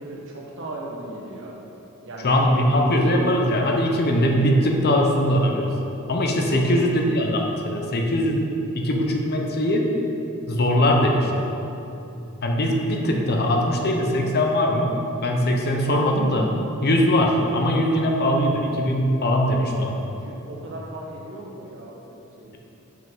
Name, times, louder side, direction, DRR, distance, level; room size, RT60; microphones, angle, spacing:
voice 1, 0.0-1.5 2.1-2.4 6.5-6.9 20.2-22.6, right 1 dB, 60° right, -3 dB, 1.3 m, -37 dB
voice 2, 2.2-5.7 6.1-8.5 8.7-9.9 10.5-11.5 12.4-14.9 15.2-16.5 16.8-20.0, equal, 45° left, 1 dB, 0.8 m, -21 dB
5.8 x 5.4 x 5.4 m, 2.9 s
head